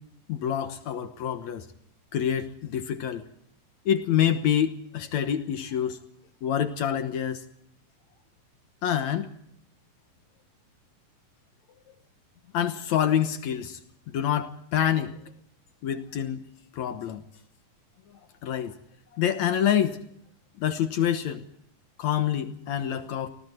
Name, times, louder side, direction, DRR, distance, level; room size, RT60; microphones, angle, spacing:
voice 1, 0.3-1.7 2.1-3.2 3.9-6.0 6.4-7.4 8.8-9.3 12.5-13.8 14.1-15.2 15.8-16.4 16.7-17.2 18.4-18.7 19.1-20.0 20.6-21.5 22.0-23.3, left 9 dB, 65° left, 9 dB, 2.3 m, -26 dB
29.0 x 20.0 x 4.5 m, 0.70 s
omnidirectional pair, 3.7 m